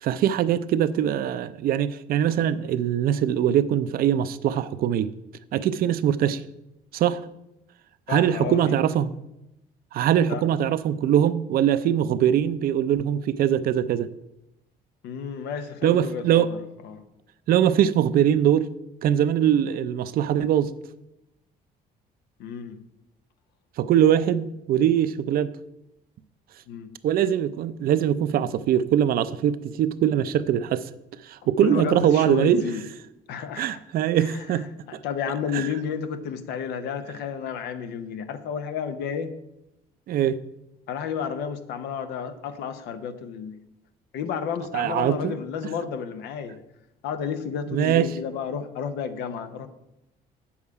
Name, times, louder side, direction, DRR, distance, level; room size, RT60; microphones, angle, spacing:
voice 1, 0.0-5.1 5.5-6.4 6.9-7.2 8.1-9.1 9.9-14.1 15.8-16.5 17.5-18.7 19.0-20.7 23.8-25.5 27.0-30.9 31.2-32.6 33.6-34.7 35.5-35.7 40.1-40.4 44.7-45.3 47.7-48.1, right 10 dB, 60° right, 0.5 m, -22 dB
voice 2, 8.1-8.8 10.2-10.4 15.0-16.6 16.8-17.0 22.4-22.8 26.7-26.9 31.6-32.8 33.3-33.8 34.2-39.3 40.9-43.6 44.1-46.6 47.0-49.7, left 7 dB, 85° left, 0.8 m, -31 dB
8.6 x 7.2 x 4.8 m
cardioid pair, 110°, 17 cm